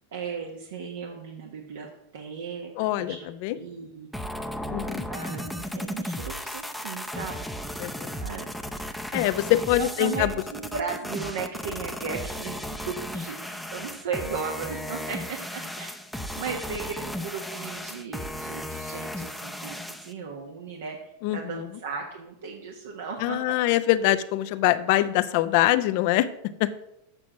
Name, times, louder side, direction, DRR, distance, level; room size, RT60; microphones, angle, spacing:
voice 1, 0.1-3.3 3.5-4.1 5.1-7.4 8.2-8.5 9.8-23.6, right 5 dB, 75° right, 1 dB, 1.3 m, -36 dB
voice 2, 2.8-3.2 3.4-3.6 4.7-5.0 7.8-8.1 9.1-10.3 21.2-21.4 23.2-26.3 26.6-26.7, left 15 dB, 60° left, 12 dB, 0.6 m, -23 dB
sound 1, 4.1-20.1, equal, ahead, 0.6 m, -35 dB
7.6 x 6.0 x 6.2 m, 0.84 s
hypercardioid pair, 110°, 0 cm